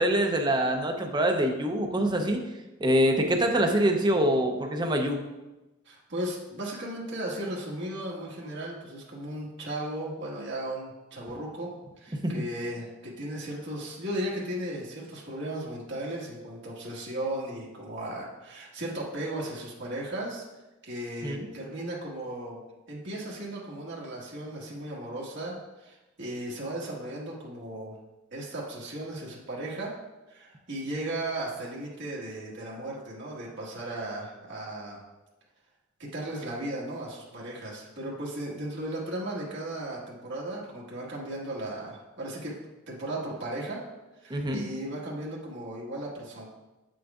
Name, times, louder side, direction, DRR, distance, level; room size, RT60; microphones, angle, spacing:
voice 1, 0.0-2.4 2.8-5.2 12.2-12.3 21.2-21.5 44.3-44.7, right 1 dB, 20° right, 3 dB, 0.6 m, -25 dB
voice 2, 5.8-11.7 12.0-20.4 20.8-22.6 22.9-27.9 28.3-30.0 30.3-35.0 36.0-42.5 42.9-43.8 44.2-46.5, right 1 dB, 60° right, -5 dB, 1.5 m, -36 dB
7.9 x 6.2 x 2.4 m, 1.1 s
head